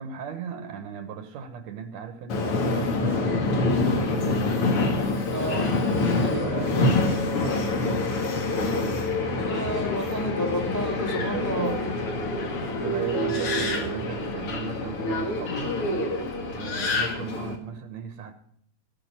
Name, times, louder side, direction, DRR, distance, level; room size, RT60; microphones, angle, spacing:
voice 1, 0.0-3.4 3.7-4.5 6.0-8.5 11.0-11.8 12.7-15.8 16.5-18.4, right 7 dB, 75° right, 9 dB, 2.2 m, -37 dB
Subway metro underground, 2.3-17.6, left 2 dB, 55° left, 2.5 m, -26 dB
voice 2, 5.3-5.7 6.2-6.4 8.5-8.7 9.4-11.7, left 1 dB, 5° left, 3 dB, 1.8 m, -31 dB
17.0 x 5.9 x 8.8 m, 0.66 s
omnidirectional pair, 3.3 m